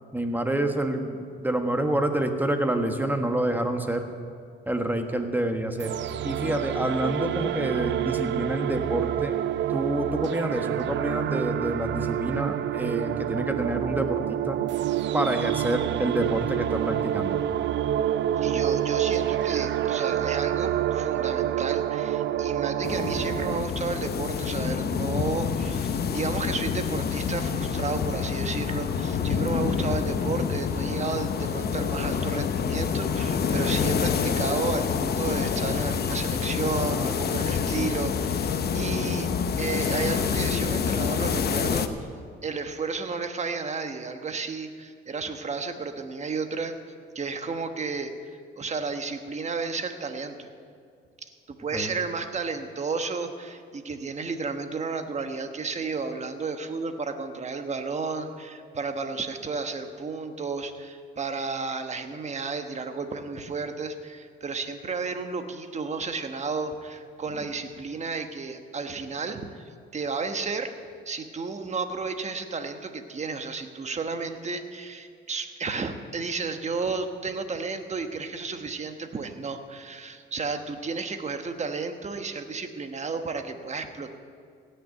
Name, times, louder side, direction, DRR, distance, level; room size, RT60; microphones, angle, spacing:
voice 1, 0.1-4.1 4.7-5.9 6.2-9.4 9.7-14.6 15.1-17.4 51.7-51.9, right 1 dB, 10° right, 5 dB, 1.3 m, -27 dB
sound 1, 5.8-23.6, right 11 dB, 65° right, 0.5 m, -27 dB
voice 2, 18.4-39.3 39.6-41.9 42.4-46.7 47.1-48.1 48.6-50.5 51.5-70.7 71.0-84.1, right 4 dB, 35° right, 7 dB, 1.2 m, -32 dB
sound 2, 22.8-41.9, left 6 dB, 55° left, 0.9 m, -27 dB
16.5 x 6.8 x 9.0 m, 2.2 s
cardioid pair, 90°, 20 cm